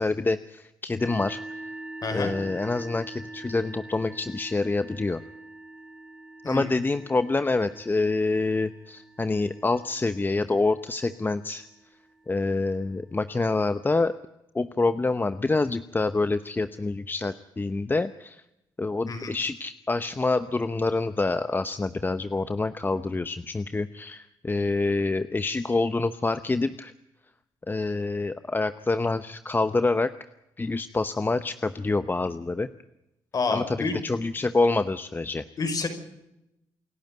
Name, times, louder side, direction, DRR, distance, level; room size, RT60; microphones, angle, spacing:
voice 1, 0.0-1.4 2.1-5.2 6.5-11.7 12.3-14.1 14.5-18.4 18.8-26.9 27.7-30.1 30.6-32.7 33.5-33.8 34.0-35.4, left 3 dB, 25° left, 12 dB, 0.9 m, -26 dB
sound 1, 1.0-12.5, right 2 dB, 10° right, 3.4 m, -44 dB
voice 2, 2.0-2.3 6.4-6.7 19.1-19.3 33.3-34.0 35.6-35.9, left 3 dB, 50° left, 7 dB, 5.7 m, -28 dB
28.0 x 11.5 x 9.2 m, 0.87 s
cardioid pair, 70°, 8 cm